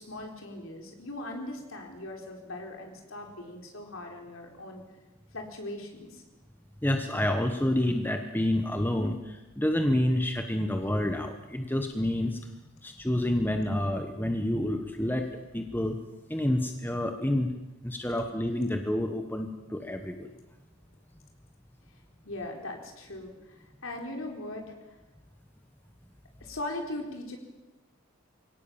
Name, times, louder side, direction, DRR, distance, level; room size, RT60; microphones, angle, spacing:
voice 1, 0.0-4.8 5.3-6.2 22.2-24.7 26.4-27.4, left 1 dB, 65° left, 2 dB, 4.0 m, -39 dB
voice 2, 6.8-12.4 12.8-15.3 15.5-16.0 16.3-17.5 17.8-20.3, left 1 dB, 10° left, 5 dB, 1.2 m, -28 dB
23.5 x 17.5 x 7.4 m, 1.1 s
head